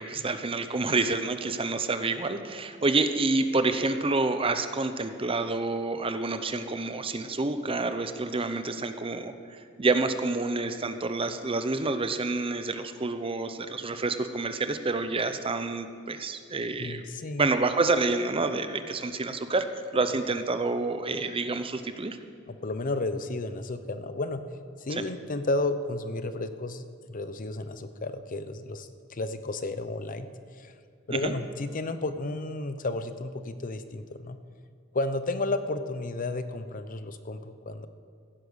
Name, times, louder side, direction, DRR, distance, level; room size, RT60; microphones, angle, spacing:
voice 1, 0.0-17.0 17.4-19.7 19.9-22.2 24.9-25.0 31.1-31.3, right 3 dB, 25° right, 9 dB, 0.7 m, -28 dB
voice 2, 16.8-17.5 22.5-24.4 24.8-30.3 30.5-30.7 31.1-34.4 34.9-37.9, left 2 dB, 40° left, 11 dB, 0.7 m, -32 dB
16.0 x 9.9 x 6.4 m, 2.2 s
head